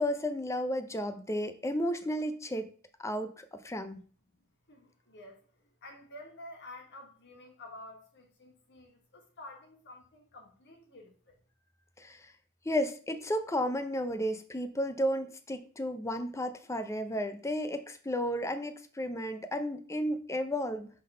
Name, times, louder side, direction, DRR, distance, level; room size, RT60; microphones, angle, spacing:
voice 1, 0.0-2.7 3.0-4.0 12.0-12.3 12.7-20.9, equal, 15° left, 9 dB, 0.5 m, -33 dB
voice 2, 4.3-11.4, left 1 dB, 50° left, 3 dB, 1.4 m, -51 dB
5.7 x 3.4 x 5.5 m, 0.43 s
head